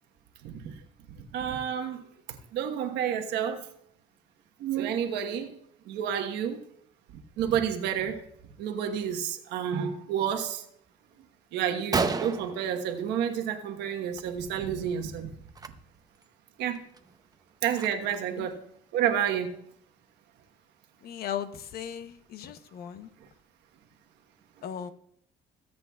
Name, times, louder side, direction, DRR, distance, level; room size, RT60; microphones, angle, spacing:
voice 1, 0.4-0.7 1.3-2.0 2.5-3.6 4.6-5.5 5.9-6.6 7.4-8.2 8.6-10.6 11.5-15.3 16.6-16.8 17.6-18.6 18.9-19.5, right 9 dB, 85° right, 5 dB, 1.2 m, -30 dB
Gunshot gunfire, 11.2-11.3 11.6-11.7 11.9-13.5 13.9-14.2 14.5-14.7 15.5-15.7 16.2-16.3 16.7-18.3, right 4 dB, 20° right, 0.7 m, -33 dB
voice 2, 21.0-23.1 24.6-24.9, left 9 dB, 65° left, 11 dB, 0.8 m, -37 dB
19.5 x 7.9 x 2.4 m, 0.71 s
cardioid pair, 110°, 17 cm